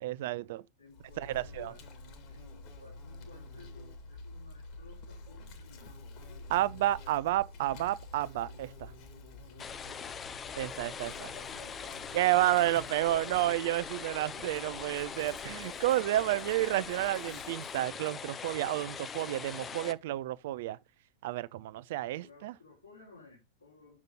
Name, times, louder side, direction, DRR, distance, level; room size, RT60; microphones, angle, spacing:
voice 1, 0.0-0.6 1.2-1.7 6.5-8.9 10.6-11.3 12.1-20.8 21.2-22.5, right 15 dB, 55° right, 0.5 m, -30 dB
voice 2, 0.8-1.8 2.3-6.0 9.4-10.4 11.1-12.1 22.2-24.0, left 3 dB, 80° left, 4.2 m, -56 dB
Insect, 0.9-17.9, left 2 dB, 45° left, 2.1 m, -50 dB
sound 1, 9.6-19.9, left 6 dB, 20° left, 0.6 m, -42 dB
8.5 x 6.6 x 3.7 m
figure-of-eight pair, 90°, 0 cm